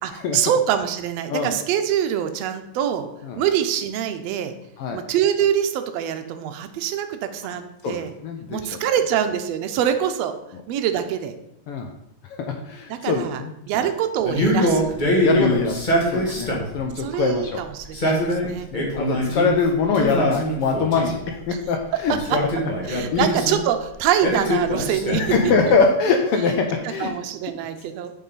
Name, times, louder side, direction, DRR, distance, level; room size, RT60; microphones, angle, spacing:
voice 1, 0.0-3.1 3.4-4.6 4.9-8.1 8.5-10.3 10.7-11.3 12.9-14.9 16.3-16.4 17.0-18.7 19.3-19.6 22.1-22.2 22.9-25.3 26.8-28.1, right 9 dB, 75° right, 8 dB, 1.7 m, -24 dB
voice 2, 7.8-8.6 11.7-11.9 12.4-13.5 15.2-17.6 18.4-22.2 22.8-23.2 25.2-27.1, left 4 dB, 80° left, 3 dB, 1.3 m, -23 dB
Male speech man speaking, 14.2-16.8 17.8-19.5 19.9-21.2 22.1-23.6 24.2-25.7, equal, 40° left, 0.7 m, -23 dB
7.4 x 5.5 x 4.0 m, 0.80 s
omnidirectional pair, 3.3 m